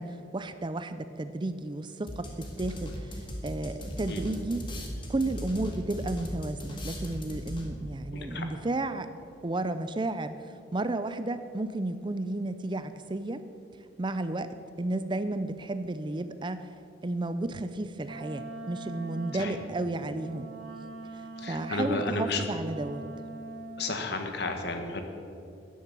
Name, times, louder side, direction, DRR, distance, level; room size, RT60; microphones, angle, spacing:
voice 1, 0.0-4.7 5.1-9.1 9.4-13.4 14.0-16.7 17.0-20.5 21.1-21.2 21.5-23.1, right 2 dB, 25° right, 11 dB, 0.5 m, -33 dB
sound 1, 2.1-7.9, equal, 25° left, 1.8 m, -38 dB
voice 2, 8.1-8.4 19.4-19.6 21.4-22.4 23.8-25.0, left 3 dB, 60° left, 5 dB, 1.5 m, -32 dB
Wind instrument woodwind instrument, 18.0-24.1, right 2 dB, 85° right, 2.4 m, -43 dB
13.5 x 10.5 x 6.0 m, 2.6 s
head